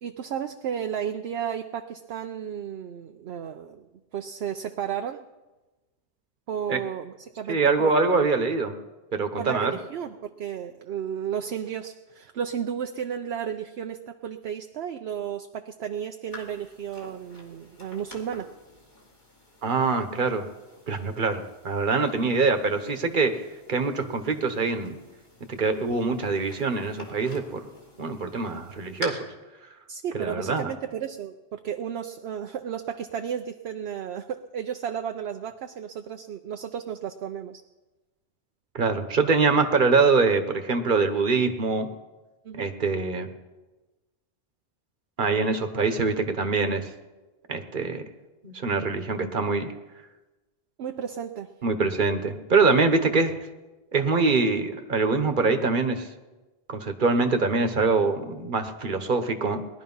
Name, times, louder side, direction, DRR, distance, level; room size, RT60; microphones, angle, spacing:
voice 1, 0.0-3.9 4.1-5.2 6.5-8.0 9.4-18.5 29.9-37.6 42.4-42.7 50.8-51.5, right 8 dB, 70° right, 6 dB, 0.9 m, -33 dB
voice 2, 7.5-8.8 9.1-9.8 19.6-20.5 20.9-23.3 23.7-25.0 25.5-27.7 28.0-29.2 30.1-30.7 38.7-41.9 42.5-43.3 45.2-46.9 47.5-48.0 48.4-49.7 51.6-53.3 53.9-56.1 56.7-59.6, right 4 dB, 45° right, 7 dB, 1.3 m, -24 dB
sound 1, 16.3-29.1, left 2 dB, 40° left, 2.7 m, -47 dB
19.5 x 11.5 x 5.5 m, 1.2 s
omnidirectional pair, 1.2 m